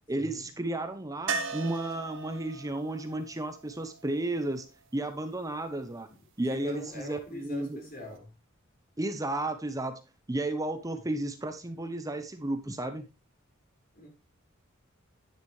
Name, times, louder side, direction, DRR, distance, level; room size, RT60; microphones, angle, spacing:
voice 1, 0.1-4.7 4.9-6.1 6.4-7.8 9.0-10.0 10.3-13.1, right 1 dB, 15° right, 0.8 m, -33 dB
sound 1, 1.3-5.2 7.8-7.9 8.2-8.3, right 5 dB, 65° right, 1.5 m, -38 dB
voice 2, 6.5-8.3 13.9-14.1, left 1 dB, 45° left, 5.1 m, -42 dB
10.5 x 10.0 x 3.2 m
head